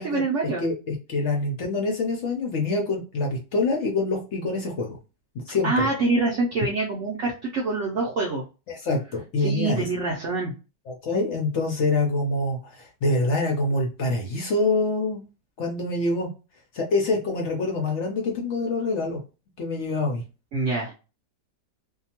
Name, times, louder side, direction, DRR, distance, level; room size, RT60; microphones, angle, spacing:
voice 1, 0.0-0.7 5.6-8.4 9.4-10.5 20.5-20.9, right 3 dB, 70° right, -2 dB, 0.7 m, -25 dB
voice 2, 0.6-4.9 5.3-5.9 8.7-9.9 10.9-15.2 15.6-16.3 16.7-19.2 19.6-20.2, left 2 dB, 70° left, 1 dB, 0.7 m, -25 dB
2.7 x 2.2 x 2.8 m, 0.32 s
omnidirectional pair, 1.9 m